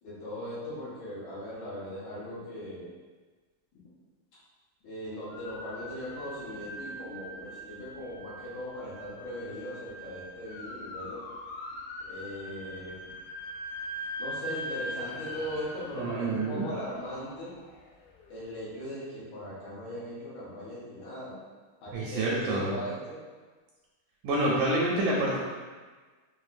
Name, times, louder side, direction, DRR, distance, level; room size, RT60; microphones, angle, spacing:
voice 1, 0.0-2.9 4.8-11.2 12.1-13.0 14.2-17.5 18.3-21.4 21.8-23.2, equal, 65° left, -10 dB, 2.3 m, -39 dB
sound 1, 5.3-18.4, equal, 90° left, 2.2 m, -42 dB
voice 2, 16.0-16.7 21.9-22.7 24.2-25.4, right 1 dB, 80° right, -5 dB, 1.8 m, -27 dB
5.9 x 2.1 x 2.5 m, 1.4 s
omnidirectional pair, 3.7 m